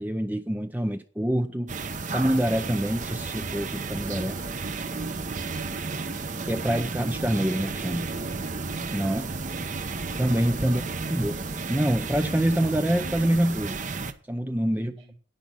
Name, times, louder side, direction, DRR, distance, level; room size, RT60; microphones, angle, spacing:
voice 1, 0.0-1.7 2.1-4.4 6.5-8.1 8.9-9.3 10.2-10.8 11.1-11.4 11.7-13.8 14.3-14.9, right 1 dB, 10° right, 0.5 m, -26 dB
sound 1, 1.7-14.1, right 3 dB, 40° right, 0.9 m, -32 dB
voice 2, 5.3-6.3 10.6-10.9 14.7-15.1, right 3 dB, 60° right, 2.8 m, -47 dB
10.5 x 9.4 x 5.4 m
head